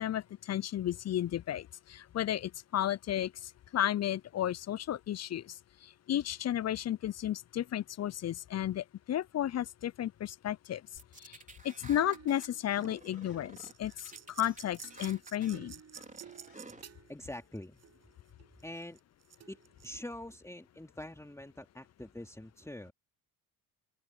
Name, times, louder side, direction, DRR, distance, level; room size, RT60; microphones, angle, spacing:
voice 1, 0.0-5.6 6.1-10.8 11.2-11.4 11.6-15.7, left 11 dB, 35° left, 0.6 m, -33 dB
sound 1, 11.0-12.5 12.8-13.7 14.0-15.6 15.9-16.8, right 3 dB, 15° right, 4.1 m, -52 dB
Bird vocalization bird call bird song, 11.6-12.0 12.3-16.1 16.5-16.7, left 9 dB, 55° left, 3.3 m, -63 dB
sound 2, 12.0-13.2 13.5-18.1 18.4-19.9, right 9 dB, 35° right, 1.0 m, -51 dB
voice 2, 17.1-17.8 18.6-19.0 19.5-22.9, left 1 dB, 5° left, 3.0 m, -45 dB
open air
hypercardioid pair, 60°, 43 cm